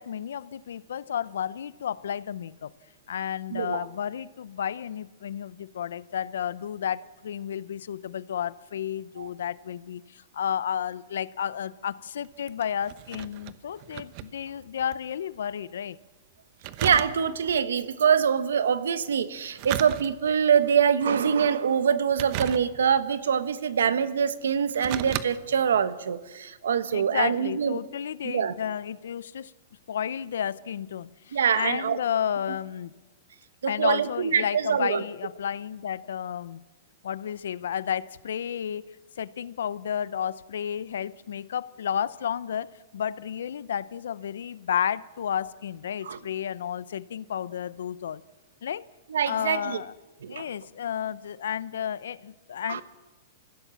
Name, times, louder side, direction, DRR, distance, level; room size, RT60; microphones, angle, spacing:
voice 1, 0.0-2.7 3.1-16.0 26.9-29.5 29.9-32.9 33.7-36.6 37.0-48.2 48.6-48.9 49.2-49.9 50.3-52.8, left 9 dB, 85° left, 0.7 m, -32 dB
voice 2, 3.5-3.9 9.2-9.3 16.8-27.8 28.2-28.5 31.3-32.0 33.6-35.0 46.0-46.2 49.1-49.8 50.2-50.5 52.7-52.8, right 7 dB, 90° right, 1.3 m, -24 dB
sound 1, 12.2-15.1 15.4-15.5 16.6-17.6 19.4-20.5 21.0-21.4 22.1-23.1 23.9-24.0 24.5-25.3 25.7-25.8, right 13 dB, 45° right, 1.0 m, -35 dB
25.0 x 16.0 x 7.1 m
hypercardioid pair, 140°, 0 cm